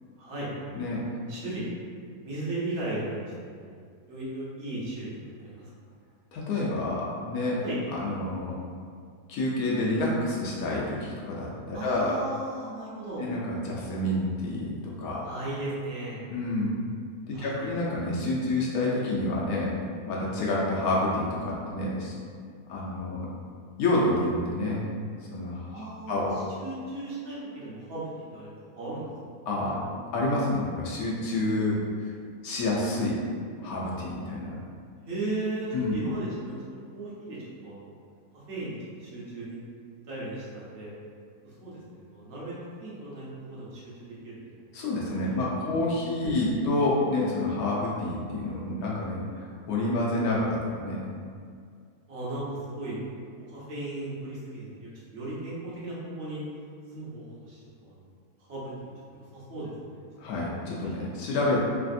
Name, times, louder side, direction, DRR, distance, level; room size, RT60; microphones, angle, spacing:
voice 1, 0.2-0.5 1.3-1.7 2.2-3.2 3.6-3.8 4.1-5.1 5.4-5.7 7.6-7.8 11.7-13.2 15.2-16.3 17.3-17.7 17.9-18.1 25.7-28.5 28.8-29.1 35.1-36.6 36.9-37.9 38.5-39.6 40.0-40.9 41.4-42.5 42.8-44.6 45.6-45.7 52.1-53.0 53.5-56.4 56.9-58.0 58.4-60.0 61.0-61.1, right 2 dB, 50° right, -8 dB, 0.9 m, -36 dB
voice 2, 6.3-7.6 7.9-8.6 9.3-12.1 13.2-15.2 16.3-16.8 17.3-19.7 20.1-22.1 22.7-23.3 23.8-24.8 25.3-26.4 29.5-29.8 30.1-32.1 32.4-33.2 33.6-34.6 35.7-36.0 44.7-51.0 60.2-61.6, left 2 dB, 75° left, -5 dB, 1.0 m, -28 dB
3.2 x 2.4 x 2.5 m, 2.2 s
omnidirectional pair, 1.7 m